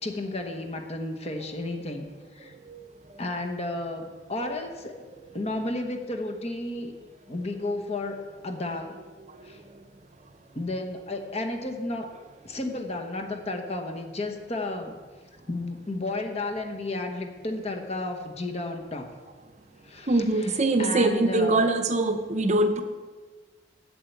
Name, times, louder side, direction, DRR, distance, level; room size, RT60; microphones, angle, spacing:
voice 1, 0.0-2.5 3.2-5.0 5.3-6.9 7.3-9.0 9.4-9.6 10.5-12.1 12.4-14.9 15.5-19.1 19.8-21.7, left 2 dB, 35° left, 4 dB, 1.2 m, -33 dB
voice 2, 20.1-22.8, right 2 dB, 40° right, 8 dB, 0.7 m, -23 dB
8.0 x 7.6 x 8.1 m, 1.4 s
head